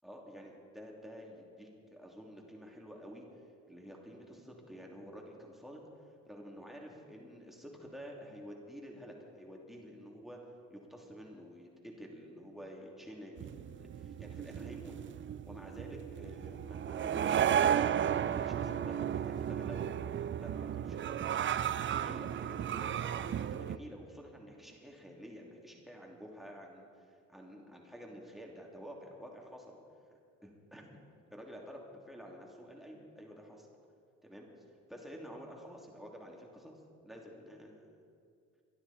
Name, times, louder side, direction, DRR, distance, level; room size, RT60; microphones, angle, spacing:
voice 1, 0.0-3.3 3.7-5.8 6.3-10.4 10.7-14.9 15.4-17.4 17.8-21.2 21.9-29.8 30.4-31.0 31.3-33.7 34.2-34.5 34.9-36.8 37.0-38.0, equal, ahead, -1 dB, 3.0 m, -50 dB
sound 1, 13.4-23.8, right 9 dB, 40° right, 0.5 m, -34 dB
23.0 x 12.0 x 4.3 m, 2.3 s
cardioid pair, 90°, 30 cm